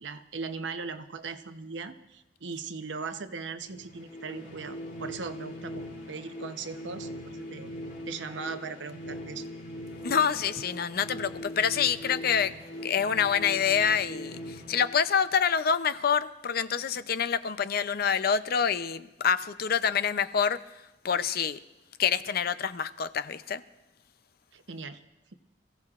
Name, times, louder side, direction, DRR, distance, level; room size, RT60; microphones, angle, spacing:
voice 1, 0.0-7.7 8.1-9.5 24.5-25.0, right 4 dB, 90° right, 8 dB, 0.8 m, -39 dB
sound 1, 3.6-15.5, equal, 75° left, 4.0 m, -41 dB
voice 2, 10.0-12.5 12.8-20.6 21.0-21.6 22.0-23.6, left 7 dB, 55° left, 13 dB, 0.5 m, -27 dB
26.5 x 16.0 x 2.5 m, 0.98 s
head